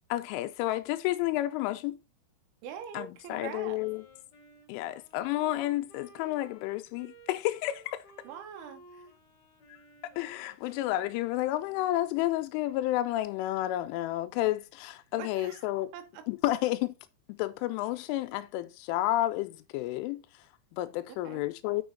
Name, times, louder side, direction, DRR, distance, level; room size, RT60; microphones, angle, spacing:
voice 1, 0.1-2.0 2.9-4.1 4.7-8.1 10.2-15.9 16.3-16.9 17.3-21.8, left 15 dB, 90° left, 3.1 m, -31 dB
voice 2, 2.6-3.8 8.3-9.1 15.2-15.6 15.9-16.0 21.2-21.5, right 9 dB, 80° right, 3.7 m, -43 dB
Wind instrument woodwind instrument, 3.2-11.9, right 1 dB, 35° left, 1.9 m, -56 dB
6.8 x 6.3 x 3.8 m
omnidirectional pair, 5.5 m